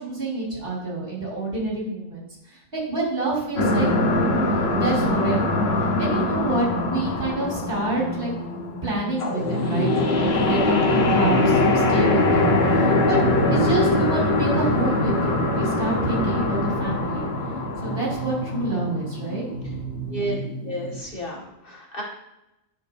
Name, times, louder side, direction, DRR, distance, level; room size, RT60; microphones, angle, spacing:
voice 1, 0.0-4.3 4.7-5.7 6.0-8.3 8.8-10.1 10.3-13.2 13.5-17.3 17.8-19.8, right 2 dB, 60° right, -6 dB, 3.3 m, -28 dB
sound 1, 3.6-21.0, left 2 dB, 75° left, 1.3 m, -23 dB
voice 2, 20.6-22.0, right 1 dB, 60° left, -4 dB, 2.1 m, -31 dB
10.5 x 5.9 x 2.7 m, 0.91 s
omnidirectional pair, 1.1 m